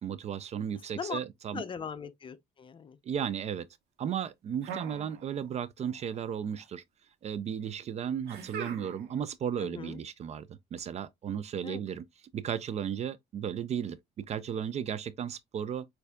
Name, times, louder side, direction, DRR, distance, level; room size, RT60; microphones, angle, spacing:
voice 1, 0.0-1.6 3.1-3.7 4.0-6.8 7.2-12.0 12.3-15.9, right 8 dB, 40° right, 0.4 m, -35 dB
voice 2, 1.5-3.0 9.6-10.0 11.6-11.8, left 6 dB, 30° left, 0.6 m, -39 dB
sound 1, 4.6-5.6 5.9-6.6 8.3-9.2, right 7 dB, 75° right, 1.2 m, -42 dB
6.5 x 2.6 x 2.3 m
cardioid pair, 110°, 17 cm